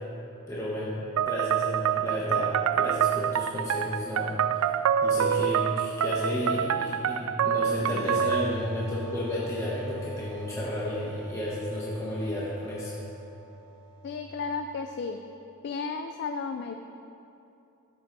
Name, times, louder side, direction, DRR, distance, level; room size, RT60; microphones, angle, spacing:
voice 1, 0.5-4.7 5.0-12.9, left 1 dB, 15° left, -7 dB, 1.1 m, -32 dB
sound 1, 1.2-8.6, right 8 dB, 70° right, 0.3 m, -26 dB
sound 2, 7.8-15.2, equal, 65° left, 2.1 m, -42 dB
voice 2, 14.0-15.2 15.6-16.8, left 4 dB, 50° left, 6 dB, 0.3 m, -33 dB
12.5 x 7.9 x 2.6 m, 2.7 s
head